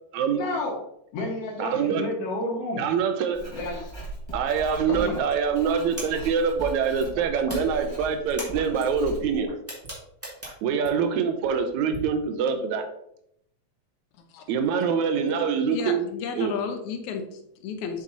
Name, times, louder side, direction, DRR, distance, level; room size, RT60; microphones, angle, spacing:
voice 1, 0.4-0.8 1.1-2.8 3.5-3.9 4.9-5.2, left 2 dB, 60° left, 0 dB, 2.4 m, -30 dB
voice 2, 1.6-2.1 2.8-3.5 4.3-9.5 10.6-12.9 14.5-16.1 16.4-16.5, right 6 dB, 85° right, 7 dB, 2.1 m, -25 dB
Writing, 3.3-9.5, right 2 dB, 15° left, 0.8 m, -39 dB
sound 1, 4.4-6.1 6.6-7.6 7.8-8.8 9.4-9.5 9.8-9.9 10.3-10.9 11.4-12.0, right 2 dB, 40° right, 1.5 m, -44 dB
sound 2, 6.0-7.2 7.4-10.8, right 1 dB, 5° right, 1.8 m, -40 dB
voice 3, 15.7-18.0, left 6 dB, 80° left, 6 dB, 2.2 m, -33 dB
7.4 x 6.2 x 2.8 m, 0.74 s
omnidirectional pair, 3.4 m